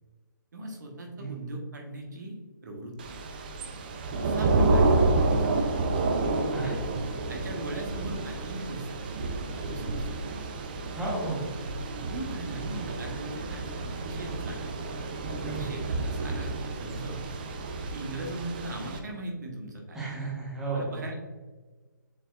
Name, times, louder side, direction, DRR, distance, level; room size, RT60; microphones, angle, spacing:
voice 1, 0.5-2.3 2.6-3.2 4.2-5.7 7.3-9.1 9.5-10.3 11.9-14.7 15.5-17.2 17.9-20.1 20.6-21.1, right 2 dB, 60° right, 1 dB, 1.1 m, -39 dB
Thunder / Rain, 3.0-19.0, right 2 dB, 25° right, 0.4 m, -29 dB
voice 2, 6.5-7.0 10.9-11.6 15.4-15.7 19.9-21.0, right 3 dB, 5° right, -7 dB, 1.0 m, -33 dB
7.0 x 3.1 x 2.3 m, 1.3 s
hypercardioid pair, 160°, 11 cm